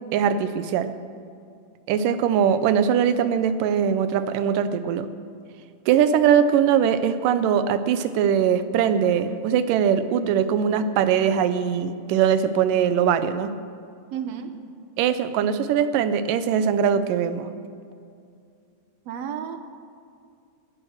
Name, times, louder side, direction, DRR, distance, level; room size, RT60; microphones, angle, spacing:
voice 1, 0.1-0.9 1.9-5.1 5.9-13.5 15.0-17.5, right 8 dB, 90° right, 11 dB, 2.4 m, -21 dB
voice 2, 14.1-14.6 19.1-19.6, right 8 dB, 65° right, 8 dB, 1.8 m, -32 dB
19.0 x 11.0 x 6.4 m, 2.3 s
omnidirectional pair, 3.7 m